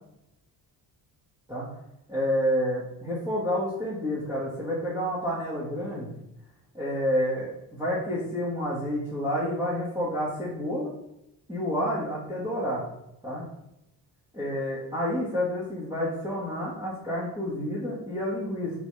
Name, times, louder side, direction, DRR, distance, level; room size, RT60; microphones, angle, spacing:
voice 1, 2.1-6.1 6.7-10.9 11.5-12.8 13.2-13.4 14.3-18.7, equal, 10° right, -9 dB, 1.9 m, -29 dB
6.1 x 5.2 x 3.4 m, 0.83 s
cardioid pair, 140°, 37 cm